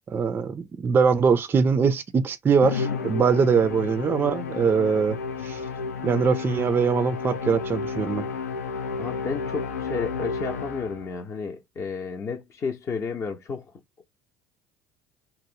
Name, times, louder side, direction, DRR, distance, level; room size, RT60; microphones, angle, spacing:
voice 1, 0.1-5.6 6.0-8.3, right 6 dB, 25° right, 0.3 m, -22 dB
Musical instrument, 2.6-11.2, left 5 dB, 85° left, 0.4 m, -32 dB
voice 2, 9.0-13.7, left 5 dB, 40° left, 0.6 m, -32 dB
3.0 x 2.0 x 2.7 m
hypercardioid pair, 65°, 8 cm